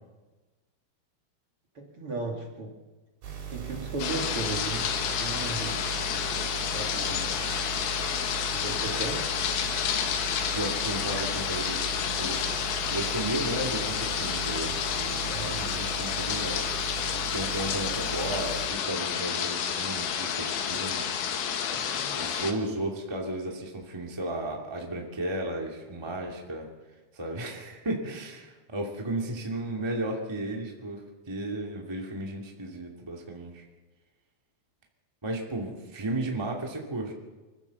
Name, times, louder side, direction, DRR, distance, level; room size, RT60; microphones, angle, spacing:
voice 1, 1.7-2.8 3.5-5.8 6.7-7.3 8.5-9.3 15.3-15.6 21.7-22.1, right 3 dB, 40° right, 0 dB, 2.3 m, -36 dB
sound 1, 3.2-18.7, right 8 dB, 85° right, 6.2 m, -39 dB
sound 2, 4.0-22.5, left 8 dB, 75° left, 3.7 m, -30 dB
voice 2, 10.5-12.4 12.9-16.7 17.3-21.2 22.2-26.7 27.1-33.6 35.2-37.1, right 1 dB, 10° right, 0 dB, 1.2 m, -34 dB
25.0 x 14.5 x 7.1 m, 1.2 s
omnidirectional pair, 5.2 m